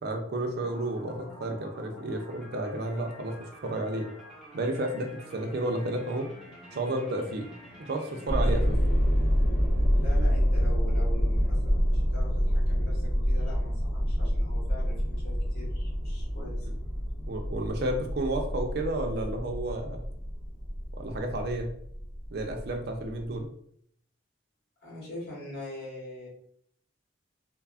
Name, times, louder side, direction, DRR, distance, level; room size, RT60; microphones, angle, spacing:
voice 1, 0.0-4.1 4.5-6.3 6.7-7.5 7.8-8.8 17.3-20.0 21.0-21.7 22.3-23.5, right 1 dB, 55° right, 3 dB, 0.4 m, -31 dB
sound 1, 0.6-8.6, equal, ahead, 0.8 m, -49 dB
sound 2, 8.3-23.4, equal, 85° left, 0.7 m, -27 dB
voice 2, 10.0-16.7 24.8-26.3, left 1 dB, 55° left, -6 dB, 1.3 m, -43 dB
3.2 x 2.0 x 2.3 m, 0.66 s
head